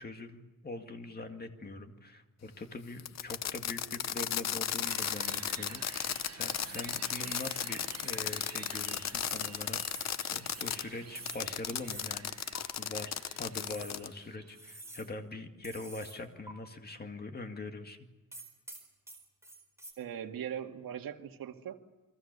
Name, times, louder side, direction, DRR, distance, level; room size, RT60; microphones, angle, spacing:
voice 1, 0.0-12.3 12.8-18.1, left 2 dB, 25° left, 6 dB, 2.1 m, -43 dB
Fireworks, 3.0-10.8 11.3-14.1, left 9 dB, 50° left, 0.8 m, -35 dB
sound 1, 4.8-14.9, right 8 dB, 45° right, 1.1 m, -51 dB
sound 2, 6.6-6.9 7.2-7.6 7.9-8.2 8.5-8.8 9.2-9.5 9.8-10.1 10.5-10.7 11.2-11.5 11.8-12.1 12.5-12.6 13.5-14.0 14.5-15.1 15.6-16.2 16.5-16.6 18.3-19.9, right 2 dB, 10° right, 4.3 m, -48 dB
voice 2, 20.0-21.8, right 9 dB, 75° right, 3 dB, 2.1 m, -40 dB
29.5 x 23.0 x 6.8 m, 1.2 s
wide cardioid pair, 150°, 35 cm